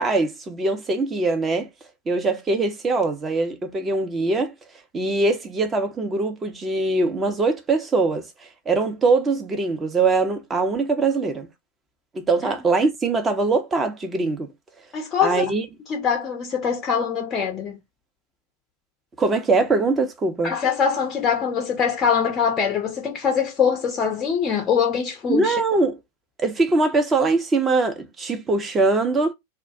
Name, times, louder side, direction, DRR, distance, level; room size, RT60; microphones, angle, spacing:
voice 1, 0.0-1.7 2.1-4.5 4.9-8.3 8.7-11.5 12.1-14.5 15.2-15.7 19.2-20.5 25.3-26.0 26.4-29.3, right 3 dB, 20° right, 0.6 m, -22 dB
voice 2, 14.9-15.5 15.9-17.8 20.4-25.6, left 7 dB, 25° left, 0.5 m, -23 dB
2.3 x 2.1 x 2.6 m
figure-of-eight pair, 90°, 0 cm